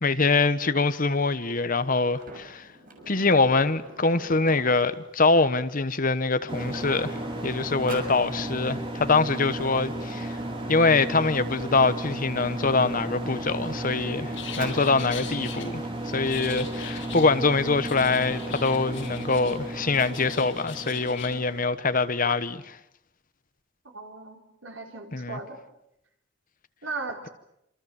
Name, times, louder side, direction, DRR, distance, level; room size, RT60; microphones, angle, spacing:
voice 1, 0.0-2.7 3.1-10.4 10.7-22.8 25.1-25.4, left 3 dB, 45° left, 1.2 m, -24 dB
Sliding door, 2.1-5.0 6.0-6.1 6.3-8.2 9.3-11.8 12.6-14.9, right 2 dB, 45° right, 6.5 m, -44 dB
sound 1, 6.5-21.6, right 1 dB, 30° right, 4.0 m, -34 dB
sound 2, 14.3-15.6 16.3-17.3 17.9-19.6 19.9-21.3, left 9 dB, 75° left, 6.1 m, -41 dB
voice 2, 23.9-25.6 26.8-27.3, right 3 dB, 85° right, 4.5 m, -37 dB
27.5 x 27.0 x 7.2 m
head